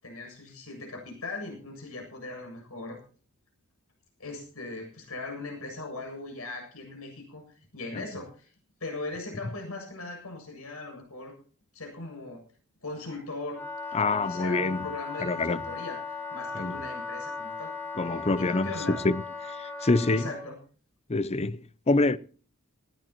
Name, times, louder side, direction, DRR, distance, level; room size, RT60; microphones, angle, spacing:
voice 1, 0.0-3.0 4.2-7.4 7.7-8.5 8.8-11.3 11.7-12.4 12.8-13.6 13.9-17.7 18.4-19.0 20.1-20.5, left 2 dB, 80° left, 7.6 m, -39 dB
Wind instrument woodwind instrument, 13.4-20.5, left 4 dB, 10° left, 4.8 m, -37 dB
voice 2, 13.9-14.9 15.2-15.6 16.5-16.8 18.0-19.2 19.5-20.3 21.1-22.2, left 3 dB, 30° left, 0.6 m, -26 dB
19.5 x 18.0 x 3.0 m
head